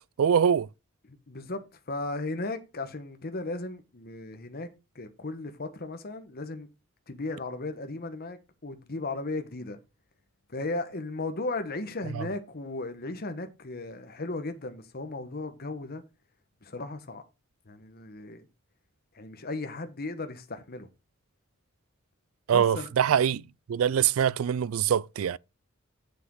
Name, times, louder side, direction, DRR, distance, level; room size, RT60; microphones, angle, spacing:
voice 1, 0.2-0.7 12.1-12.3 22.5-23.4 23.7-25.4, right 8 dB, 75° right, 0.4 m, -24 dB
voice 2, 1.1-4.7 4.9-6.7 7.1-9.8 10.5-16.0 16.6-17.2 17.7-18.4 19.1-20.9 22.5-22.9, left 2 dB, 45° left, 1.1 m, -36 dB
7.6 x 6.6 x 4.7 m
head